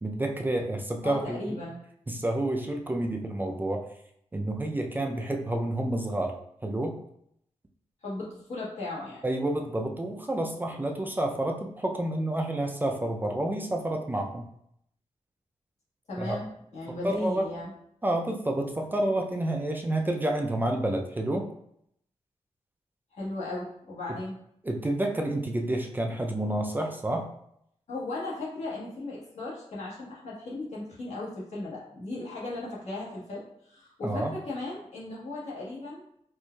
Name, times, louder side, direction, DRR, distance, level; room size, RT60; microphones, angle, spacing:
voice 1, 0.0-1.6 2.1-3.9 4.3-6.3 6.6-7.0 9.2-14.5 16.2-16.4 16.9-17.5 18.0-21.5 24.6-27.3 34.0-34.3, right 1 dB, 15° right, 2 dB, 0.3 m, -29 dB
voice 2, 1.0-1.8 8.0-9.2 16.1-17.7 23.1-24.4 27.9-36.0, left 2 dB, 75° left, -6 dB, 1.4 m, -36 dB
4.4 x 2.5 x 2.2 m, 0.72 s
wide cardioid pair, 110°, 12 cm